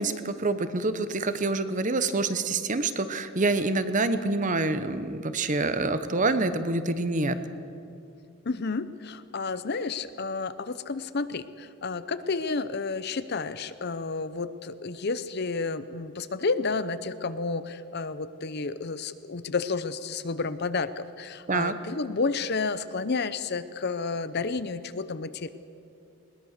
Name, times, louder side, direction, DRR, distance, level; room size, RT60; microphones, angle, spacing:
voice 1, 0.0-7.4 21.5-21.7, right 3 dB, 35° right, 11 dB, 1.0 m, -26 dB
voice 2, 8.5-25.5, left 4 dB, 50° left, 13 dB, 0.7 m, -31 dB
20.5 x 20.0 x 6.6 m, 2.5 s
head